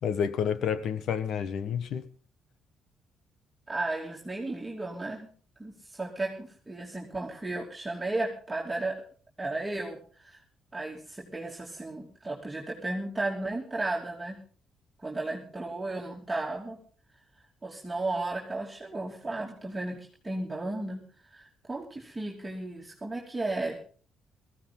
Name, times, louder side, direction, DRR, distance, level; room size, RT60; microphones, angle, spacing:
voice 1, 0.0-2.0, left 7 dB, 75° left, 1.3 m, -29 dB
voice 2, 3.7-5.3 5.6-9.0 9.4-10.4 10.7-14.4 15.0-16.8 17.6-21.0 21.3-23.8, right 2 dB, 15° right, 2.9 m, -34 dB
18.5 x 15.5 x 3.9 m
cardioid pair, 90°, 0 cm